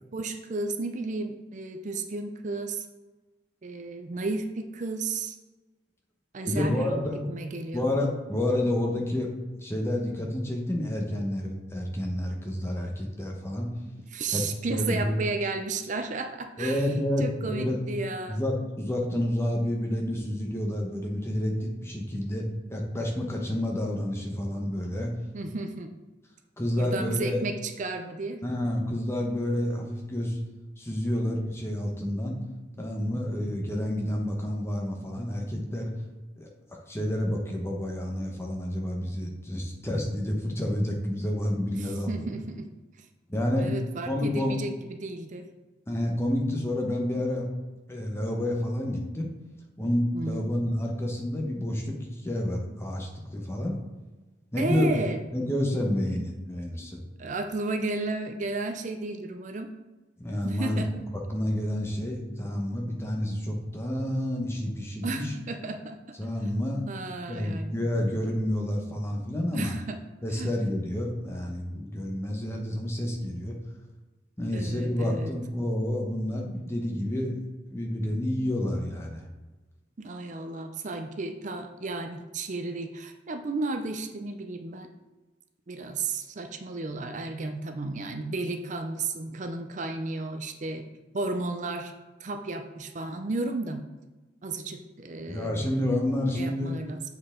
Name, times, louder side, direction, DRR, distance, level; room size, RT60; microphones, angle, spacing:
voice 1, 0.1-2.9 3.6-5.4 6.3-7.8 14.1-16.8 17.2-18.4 25.3-25.9 26.8-28.4 41.7-42.7 43.6-45.5 50.1-50.5 54.6-55.2 57.2-59.7 60.4-61.0 65.0-66.0 66.9-67.7 69.5-70.0 70.4-70.5 74.5-75.3 80.0-84.9 85.7-90.8 91.1-91.9 92.2-93.8 94.4-95.7 96.3-97.0, right 3 dB, 40° right, 6 dB, 0.5 m, -33 dB
voice 2, 6.5-7.3 7.7-9.3 9.6-13.7 14.3-14.4 14.7-15.1 16.6-17.8 18.3-22.4 22.7-25.1 26.6-27.4 28.4-30.4 30.8-32.4 32.8-35.9 36.4-36.5 36.9-42.1 43.3-43.7 44.0-44.6 45.9-47.5 47.9-49.3 49.8-53.8 54.5-54.9 55.3-57.0 60.2-60.8 61.3-65.3 66.2-66.8 67.3-69.7 70.2-73.6 74.4-77.4 77.7-79.3 95.3-96.8, left 1 dB, 15° left, 0 dB, 1.0 m, -29 dB
7.5 x 4.5 x 3.7 m, 1.2 s
head